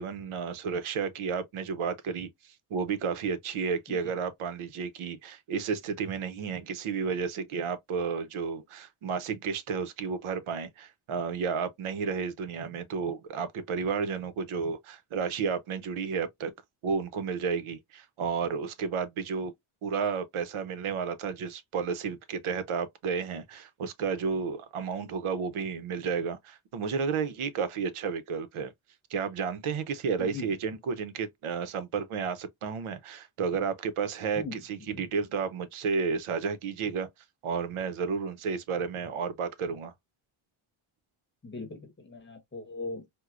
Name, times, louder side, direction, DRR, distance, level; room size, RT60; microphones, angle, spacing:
voice 1, 0.0-16.5 16.8-19.5 19.8-28.7 29.1-37.1 37.4-39.9, right 5 dB, 80° right, 0.7 m, -32 dB
voice 2, 30.2-30.5 34.3-34.9 41.4-43.1, left 3 dB, 25° left, 0.9 m, -40 dB
4.4 x 2.1 x 2.4 m
wide cardioid pair, 145°, 49 cm